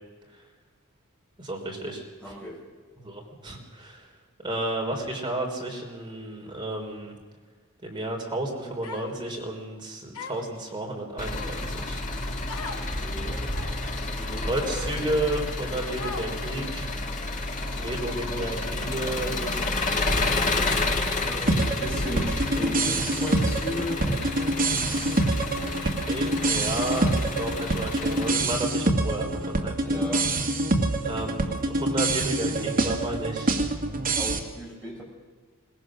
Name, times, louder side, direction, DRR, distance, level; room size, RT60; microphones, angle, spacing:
voice 1, 1.4-2.0 3.0-4.1 4.4-7.1 7.8-12.0 14.5-16.9 17.8-20.3 24.1-24.2 25.8-29.9 31.0-33.6, right 1 dB, 20° right, 0 dB, 3.6 m, -32 dB
voice 2, 2.2-2.6 12.7-13.5 13.9-15.0 21.2-24.1 29.8-30.3 34.2-35.0, left 1 dB, 5° left, -4 dB, 6.8 m, -36 dB
Human voice, 8.8-9.4 10.1-10.6 11.2-11.8 12.5-12.8 13.5-13.9 14.6-14.7 16.0-16.6, left 4 dB, 70° left, 2.6 m, -39 dB
Engine, 11.2-28.3, left 2 dB, 35° left, 2.1 m, -30 dB
sound 1, 21.5-34.4, right 2 dB, 40° right, 2.0 m, -26 dB
22.0 x 20.0 x 6.4 m, 1.5 s
head